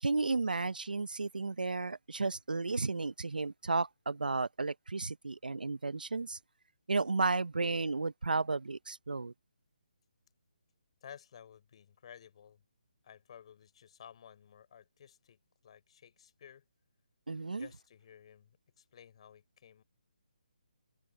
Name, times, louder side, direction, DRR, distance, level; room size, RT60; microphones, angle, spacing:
voice 1, 0.0-6.4 6.9-9.3 17.3-17.7, right 3 dB, 85° right, 0.8 m, -33 dB
voice 2, 11.0-12.6 13.0-16.6 17.5-19.8, left 8 dB, 45° left, 4.3 m, -55 dB
figure-of-eight pair, 155°, 5 cm